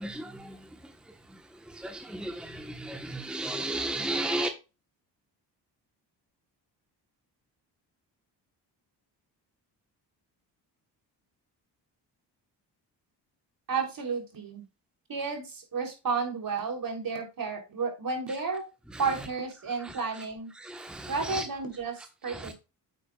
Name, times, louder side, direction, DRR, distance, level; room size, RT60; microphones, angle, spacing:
voice 1, 2.9-4.5 21.0-21.4, right 2 dB, ahead, 1.2 m, -31 dB
voice 2, 13.7-14.6 15.1-18.6 19.0-20.5 21.1-22.5, right 5 dB, 50° right, 3.5 m, -32 dB
8.6 x 8.4 x 2.4 m
cardioid pair, 70°, 44 cm